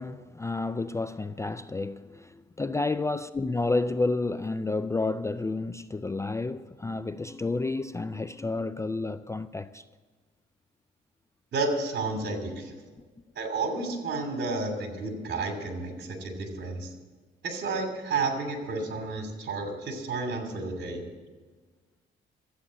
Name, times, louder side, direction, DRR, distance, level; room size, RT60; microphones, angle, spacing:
voice 1, 0.0-9.8 12.2-12.3, left 3 dB, 15° left, 0.3 m, -30 dB
voice 2, 11.5-12.7 13.3-16.9 17.4-21.0, right 3 dB, 60° right, 2.8 m, -31 dB
13.0 x 8.6 x 7.5 m
cardioid pair, 90°, 20 cm